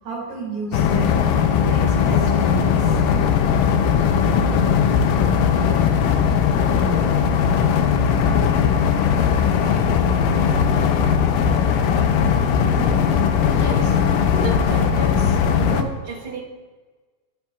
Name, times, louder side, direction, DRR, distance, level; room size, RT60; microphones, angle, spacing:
voice 1, 0.0-3.2, right 4 dB, 75° right, -5 dB, 4.1 m, -32 dB
sound 1, 0.7-15.8, left 7 dB, 85° left, 1.9 m, -18 dB
voice 2, 13.5-14.0 14.3-16.4, right 2 dB, 40° right, -4 dB, 4.2 m, -32 dB
14.0 x 9.7 x 2.3 m, 1.3 s
omnidirectional pair, 4.7 m